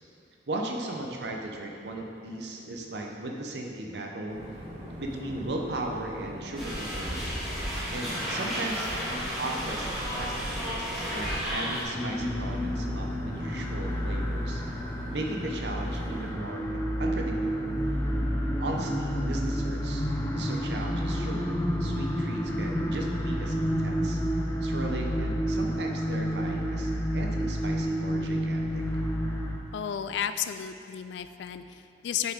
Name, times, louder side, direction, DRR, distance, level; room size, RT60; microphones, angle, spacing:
voice 1, 0.5-4.4 5.0-7.3 7.9-14.6 15.1-17.8 18.6-20.0 20.3-24.2 24.6-28.8, right 1 dB, 65° right, 1 dB, 0.8 m, -37 dB
sound 1, 4.3-16.3, equal, 40° right, 1.6 m, -42 dB
sound 2, 6.6-11.8, equal, ahead, 1.6 m, -33 dB
sound 3, 11.9-29.6, equal, 15° left, 0.5 m, -30 dB
voice 2, 29.7-32.3, left 9 dB, 75° left, 10 dB, 0.3 m, -33 dB
7.5 x 5.9 x 3.6 m, 2.6 s
head